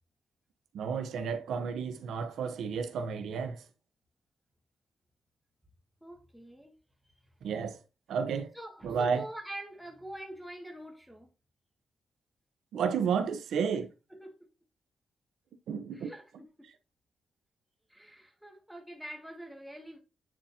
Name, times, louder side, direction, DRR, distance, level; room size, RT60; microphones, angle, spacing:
voice 1, 0.7-3.6 7.4-7.8 8.1-8.5 8.8-9.3 12.7-13.9 15.7-16.1, right 6 dB, 85° right, 0.9 m, -31 dB
voice 2, 6.0-6.7 8.5-11.3 14.1-14.5 15.9-16.7 17.9-20.0, right 1 dB, ahead, 1.8 m, -45 dB
9.6 x 4.3 x 2.7 m
cardioid pair, 120°, 0 cm